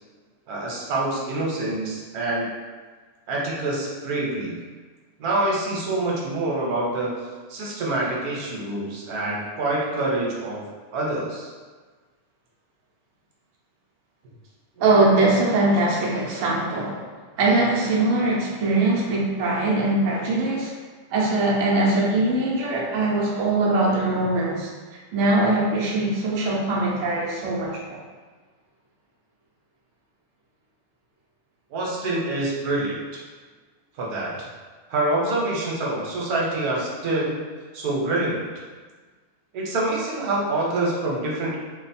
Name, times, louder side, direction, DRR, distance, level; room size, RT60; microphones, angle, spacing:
voice 1, 0.5-2.4 3.3-4.6 5.2-7.1 7.5-10.6 10.9-11.5 31.7-33.2 34.0-34.5 34.9-37.4 37.7-38.5 39.5-41.6, right 2 dB, 85° right, -3 dB, 1.3 m, -26 dB
voice 2, 14.8-17.1 17.4-20.7 21.1-28.0, right 2 dB, 65° right, -3 dB, 1.0 m, -22 dB
3.2 x 2.2 x 4.1 m, 1.4 s
omnidirectional pair, 1.6 m